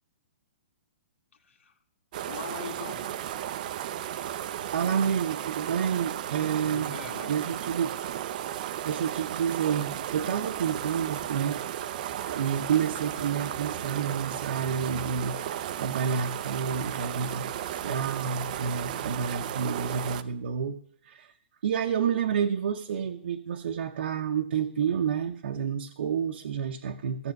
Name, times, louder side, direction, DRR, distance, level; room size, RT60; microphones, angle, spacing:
voice 1, 1.3-1.7 2.3-3.1 6.6-7.4, left 5 dB, 85° left, 2 dB, 2.2 m, -41 dB
sound 1, 2.1-20.2, right 11 dB, 40° right, 0.6 m, -34 dB
voice 2, 4.7-7.0 7.2-8.0 8.6-11.6 12.3-21.3 21.6-27.3, right 7 dB, 65° right, 4 dB, 1.0 m, -29 dB
15.0 x 8.0 x 6.6 m, 0.66 s
hypercardioid pair, 165°, 7 cm